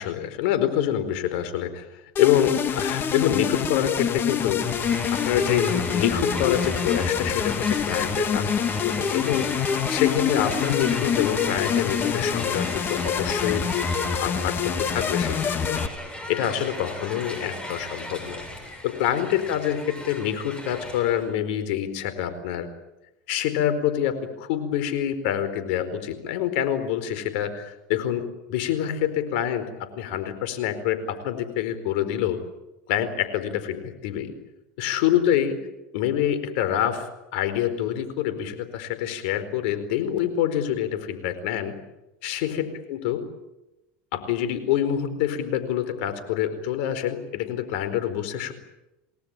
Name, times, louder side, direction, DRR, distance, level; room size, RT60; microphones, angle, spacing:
voice 1, 0.0-4.6 5.1-9.5 9.9-13.7 14.2-15.8 16.3-18.4 18.8-22.7 23.3-32.4 32.9-34.3 34.8-35.6 35.9-41.7 42.2-43.2 44.1-48.5, left 10 dB, 75° left, 11 dB, 4.5 m, -26 dB
sound 1, 2.2-15.9, left 7 dB, 35° left, 2.0 m, -26 dB
Crowd, 4.6-21.3, left 1 dB, 15° left, 7.5 m, -36 dB
29.0 x 19.0 x 9.1 m, 0.95 s
supercardioid pair, 110°, 6 cm